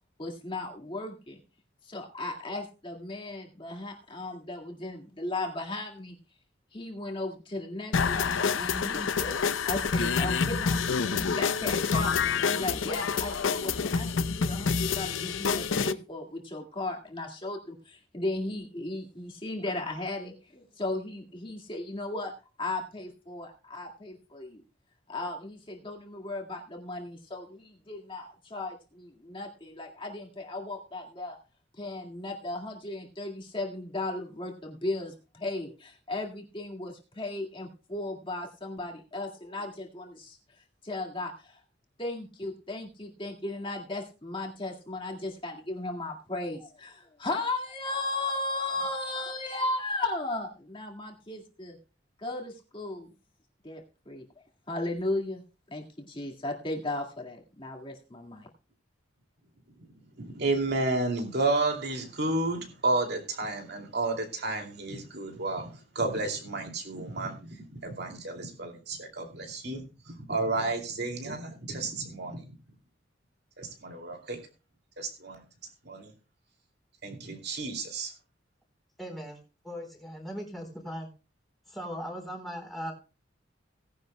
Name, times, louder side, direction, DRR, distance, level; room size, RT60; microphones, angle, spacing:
voice 1, 0.2-1.4 1.8-6.2 6.7-22.3 22.6-24.6 25.1-31.4 31.8-40.4 40.8-41.6 42.0-51.8 52.2-53.1 53.6-54.2 54.7-55.4 55.7-58.5, left 2 dB, 25° left, 1 dB, 2.0 m, -36 dB
sound 1, 7.9-15.9, left 5 dB, 85° left, 0.6 m, -27 dB
voice 2, 60.2-72.5 73.6-74.4 75.0-75.4 75.8-76.1 77.0-78.1, right 2 dB, 55° right, 3 dB, 2.5 m, -31 dB
voice 3, 79.0-79.4 79.6-81.1 81.7-82.9, equal, ahead, 0 dB, 3.9 m, -38 dB
17.5 x 10.5 x 2.2 m, 0.33 s
head